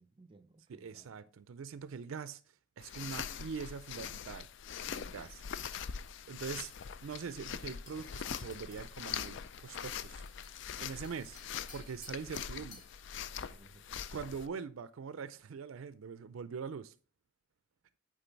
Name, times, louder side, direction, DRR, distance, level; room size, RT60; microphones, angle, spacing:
voice 1, 0.0-1.1 13.4-14.1 14.4-14.6, right 2 dB, 25° right, 0.4 m, -59 dB
voice 2, 0.7-2.4 2.8-4.5 4.9-5.5 5.7-5.8 6.3-6.7 7.0-10.3 10.8-11.4 11.7-12.8 13.4-13.6 14.1-16.9, right 6 dB, 85° right, 0.4 m, -43 dB
sound 1, 2.8-14.5, left 8 dB, 65° left, 0.4 m, -43 dB
sound 2, 6.6-13.0, left 4 dB, 35° left, 1.8 m, -59 dB
9.1 x 3.7 x 4.5 m
head